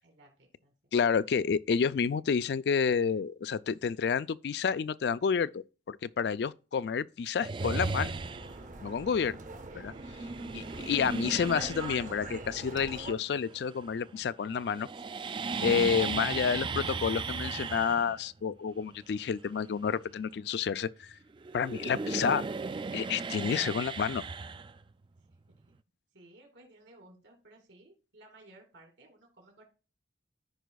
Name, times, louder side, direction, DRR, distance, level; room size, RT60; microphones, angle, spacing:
voice 1, 0.0-0.9 10.2-10.7 25.2-25.4 26.1-29.6, right 2 dB, 90° right, 2.5 m, -58 dB
voice 2, 0.9-8.1 8.8-9.4 9.7-9.9 10.5-14.9 15.6-21.1 21.5-22.4 22.9-24.2, left 6 dB, 65° left, 0.3 m, -29 dB
sound 1, 7.4-8.7 9.9-14.2 14.4-21.1 21.4-25.2, right 4 dB, 25° right, 0.3 m, -36 dB
sound 2, 7.6-13.1, right 2 dB, 45° right, 0.8 m, -44 dB
14.0 x 5.0 x 2.3 m
head